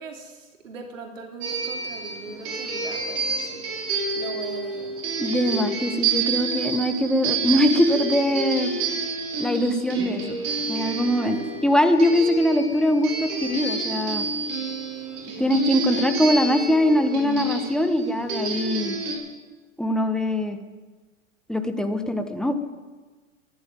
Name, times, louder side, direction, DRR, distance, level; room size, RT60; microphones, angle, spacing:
voice 1, 0.0-3.6 4.1-4.9 11.2-11.4, right 3 dB, 75° right, 2 dB, 3.2 m, -40 dB
sound 1, 1.4-19.1, right 3 dB, 40° right, 5.5 m, -29 dB
voice 2, 5.2-8.7 9.4-10.4 10.7-11.4 11.6-14.3 15.4-19.0 19.8-20.6 21.5-22.6, equal, ahead, 6 dB, 1.4 m, -22 dB
14.0 x 11.0 x 9.1 m, 1.3 s
hypercardioid pair, 105°, 39 cm